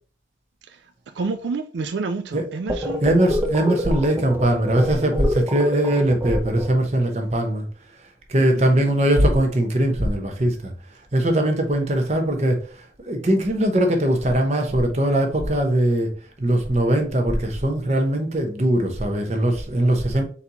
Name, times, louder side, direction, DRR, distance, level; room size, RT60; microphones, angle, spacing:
voice 1, 1.1-3.0 8.3-8.9, right 4 dB, 85° right, 0.4 m, -29 dB
sound 1, 2.7-7.1, left 1 dB, 15° right, 0.6 m, -27 dB
voice 2, 3.0-7.6 8.3-10.7 11.1-16.1 16.4-20.2, right 1 dB, 40° right, 0.9 m, -20 dB
4.2 x 4.1 x 2.9 m
head